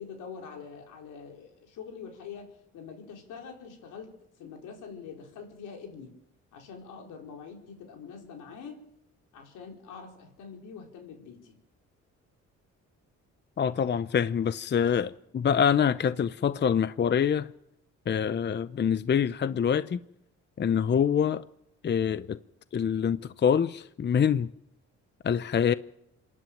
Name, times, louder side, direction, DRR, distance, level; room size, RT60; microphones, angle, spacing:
voice 1, 0.0-4.1 4.4-6.2 6.5-8.8 9.3-11.6, left 6 dB, 90° left, 4.7 m, -44 dB
voice 2, 13.6-17.5 18.1-20.0 20.6-21.4 21.8-22.4 22.7-24.5 25.2-25.7, left 7 dB, 35° left, 0.7 m, -25 dB
26.5 x 11.0 x 9.2 m
cardioid pair, 90°, 30 cm